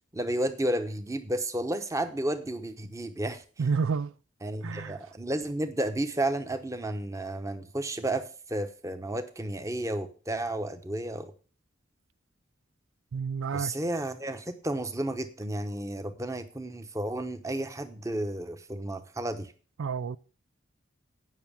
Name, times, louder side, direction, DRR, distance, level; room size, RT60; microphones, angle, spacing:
voice 1, 0.1-3.4 4.4-11.3 13.5-19.5, right 1 dB, 15° right, 0.8 m, -32 dB
voice 2, 3.6-4.1 4.6-5.0 13.1-13.7 19.8-20.2, right 5 dB, 85° right, 0.4 m, -29 dB
9.3 x 6.0 x 6.9 m
head